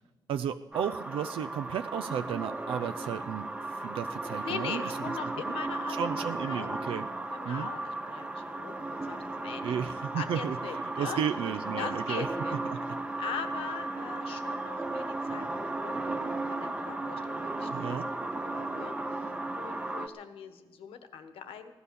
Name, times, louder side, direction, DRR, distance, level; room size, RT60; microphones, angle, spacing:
voice 1, 0.3-4.8 5.5-5.6 5.9-7.1 7.5-7.7 9.6-12.3 12.6-12.8 17.7-18.1, right 8 dB, 80° right, 9 dB, 0.5 m, -34 dB
sound 1, 0.7-20.1, right 2 dB, 10° right, 0.9 m, -35 dB
voice 2, 4.4-6.1 6.4-6.7 7.3-11.2 11.8-12.6 13.2-18.9 19.5-21.7, left 7 dB, 90° left, 9 dB, 1.3 m, -41 dB
16.0 x 11.0 x 6.9 m, 1.2 s
cardioid pair, 120°, 9 cm